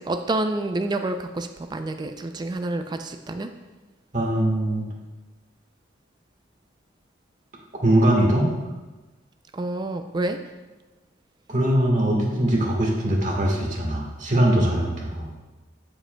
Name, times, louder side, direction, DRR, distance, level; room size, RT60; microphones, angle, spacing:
voice 1, 0.0-3.5 9.5-10.4, right 2 dB, 20° right, 7 dB, 0.3 m, -28 dB
voice 2, 4.1-4.8 7.8-8.5 11.5-15.3, right 1 dB, 40° right, -1 dB, 1.4 m, -21 dB
14.5 x 5.0 x 2.2 m, 1.2 s
head